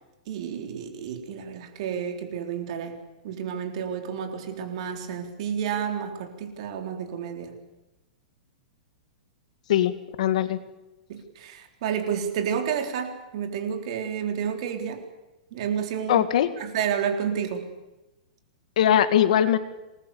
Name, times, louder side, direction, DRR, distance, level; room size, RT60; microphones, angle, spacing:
voice 1, 0.3-3.0 3.2-7.6 11.1-15.0 15.5-16.3 16.5-17.7, right 8 dB, 40° right, 5 dB, 3.8 m, -30 dB
voice 2, 9.7-10.6 16.1-16.5 18.8-19.6, left 10 dB, 55° left, 11 dB, 1.9 m, -21 dB
26.5 x 20.5 x 7.1 m, 1.0 s
supercardioid pair, 180°, 5 cm